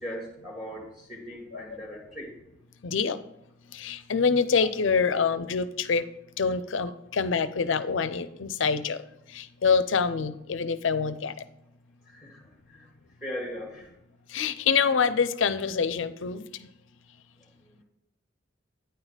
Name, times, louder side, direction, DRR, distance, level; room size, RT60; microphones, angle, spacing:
voice 1, 0.0-2.3 12.1-12.9 13.2-13.9 17.6-17.7, equal, 5° right, -1 dB, 1.6 m, -39 dB
voice 2, 2.8-3.2 3.7-6.0 6.4-9.0 9.3-11.3 14.3-16.4, left 5 dB, 70° left, 13 dB, 0.5 m, -26 dB
9.4 x 4.0 x 6.2 m, 0.84 s
head